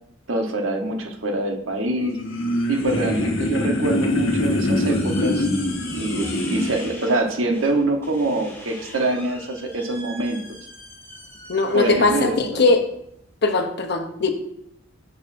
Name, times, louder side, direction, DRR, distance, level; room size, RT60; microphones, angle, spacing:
voice 1, 0.3-2.2 2.7-5.5 5.9-10.4 11.7-12.6, right 2 dB, 80° right, 3 dB, 1.3 m, -25 dB
sound 1, 2.0-6.9, left 1 dB, 75° left, 1.1 m, -23 dB
sound 2, 4.4-13.3, left 1 dB, 15° left, 2.4 m, -42 dB
voice 2, 11.5-12.9 13.4-14.3, left 3 dB, 55° left, 6 dB, 0.9 m, -20 dB
9.8 x 6.8 x 2.7 m, 0.74 s
head